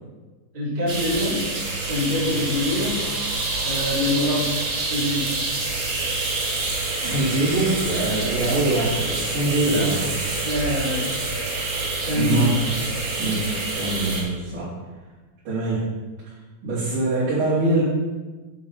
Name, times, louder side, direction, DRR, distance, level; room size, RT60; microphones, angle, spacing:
voice 1, 0.5-1.4 1.8-3.1 3.6-5.3 9.6-9.9 10.4-11.1 12.0-12.5, left 1 dB, 15° right, -9 dB, 3.0 m, -25 dB
sound 1, 0.9-14.2, right 2 dB, 85° right, 0.8 m, -27 dB
voice 2, 7.0-10.1 12.1-12.6 13.2-14.7 15.4-15.9 16.6-17.8, right 2 dB, 60° right, -12 dB, 4.7 m, -23 dB
10.0 x 7.6 x 4.1 m, 1.2 s
omnidirectional pair, 4.4 m